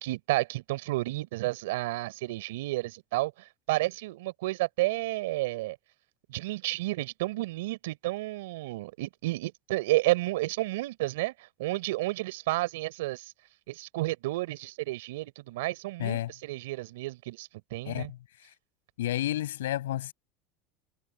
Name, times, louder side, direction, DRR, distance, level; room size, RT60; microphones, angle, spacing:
voice 1, 0.0-5.8 6.3-13.3 13.7-18.1, right 19 dB, 80° right, 3.9 m, -31 dB
voice 2, 16.0-16.3 17.8-18.5 19.0-20.1, left 13 dB, 85° left, 6.8 m, -31 dB
hypercardioid pair, 95°, 0 cm